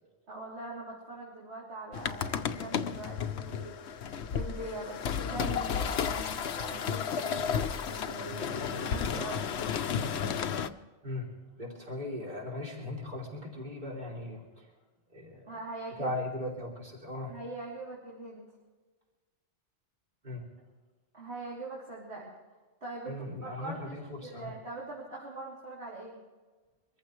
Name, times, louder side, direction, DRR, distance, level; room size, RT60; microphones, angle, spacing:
voice 1, 0.3-3.8 4.3-9.4 15.5-16.1 17.3-18.5 21.1-22.3 22.8-24.0 24.2-26.2, right 2 dB, 65° right, -6 dB, 3.5 m, -42 dB
sound 1, 1.9-10.7, left 7 dB, 70° left, 1.0 m, -33 dB
voice 2, 11.6-14.7 15.1-15.6 16.0-17.3 20.2-20.4 23.1-24.5, left 1 dB, 40° right, -2 dB, 3.4 m, -38 dB
24.5 x 15.0 x 3.2 m, 1.3 s
omnidirectional pair, 1.2 m